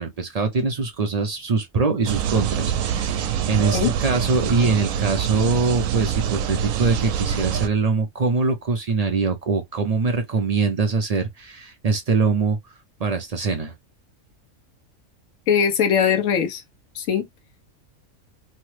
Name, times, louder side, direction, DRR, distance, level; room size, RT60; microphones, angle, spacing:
voice 1, 0.0-12.6 13.0-13.7, right 4 dB, 60° right, 0.4 m, -23 dB
sound 1, 2.0-7.7, right 9 dB, 85° right, 1.0 m, -25 dB
voice 2, 15.5-16.6 16.9-17.3, left 7 dB, 75° left, 1.2 m, -20 dB
3.1 x 2.0 x 3.0 m
omnidirectional pair, 1.4 m